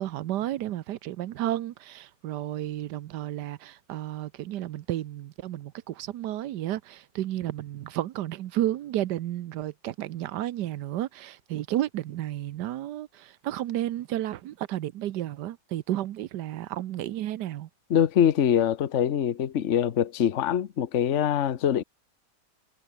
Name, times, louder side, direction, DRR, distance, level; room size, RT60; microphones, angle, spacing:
voice 1, 0.0-17.7, right 13 dB, 85° right, 1.3 m, -32 dB
voice 2, 17.9-21.8, left 9 dB, 50° left, 1.1 m, -24 dB
omnidirectional pair, 1.8 m